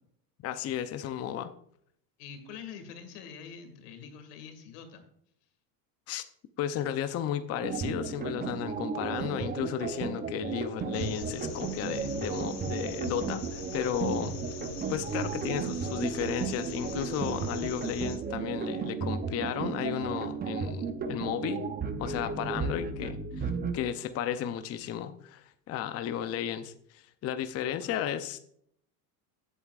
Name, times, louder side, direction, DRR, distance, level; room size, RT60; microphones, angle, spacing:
voice 1, 0.4-1.5 6.1-6.2 6.6-14.3 14.9-21.7 22.0-28.4, left 10 dB, 35° left, 10 dB, 0.6 m, -34 dB
voice 2, 2.2-5.0 27.7-28.0, left 7 dB, 85° left, 7 dB, 2.2 m, -45 dB
sound 1, 7.6-23.8, right 5 dB, 20° right, 0.7 m, -34 dB
sound 2, 10.9-18.2, left 5 dB, 60° left, 2.6 m, -43 dB
15.0 x 8.3 x 2.4 m, 0.69 s
supercardioid pair, 120°, 46 cm